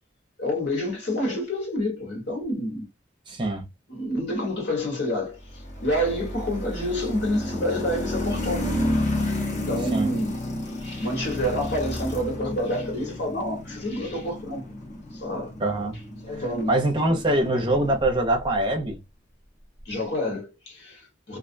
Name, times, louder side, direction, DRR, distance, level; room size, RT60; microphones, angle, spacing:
voice 1, 0.4-2.9 3.9-5.4 5.8-8.9 9.5-10.4 10.8-14.7 15.1-15.5 16.2-16.8 19.8-21.4, left 1 dB, 65° left, 1.3 m, -28 dB
voice 2, 3.3-3.7 9.9-10.1 15.6-15.9 16.4-19.0, right 1 dB, 25° right, 0.6 m, -24 dB
sound 1, 5.4-18.6, left 1 dB, 40° left, 0.8 m, -32 dB
2.5 x 2.2 x 2.5 m
head